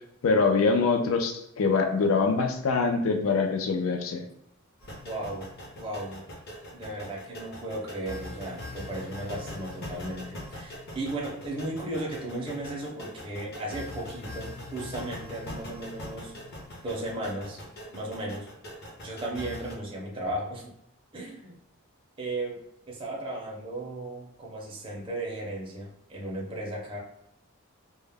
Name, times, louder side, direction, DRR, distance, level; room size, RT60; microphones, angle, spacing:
voice 1, 0.2-4.2, left 4 dB, 70° left, 4 dB, 0.4 m, -24 dB
sound 1, 4.8-19.8, left 1 dB, 50° left, 0.7 m, -42 dB
voice 2, 5.0-5.5 5.8-6.2 6.7-16.3 16.8-17.6 17.9-18.5 19.0-20.7 21.1-21.6 22.2-22.6 22.9-27.0, right 1 dB, 25° right, -3 dB, 0.5 m, -35 dB
2.2 x 2.0 x 3.3 m, 0.78 s
head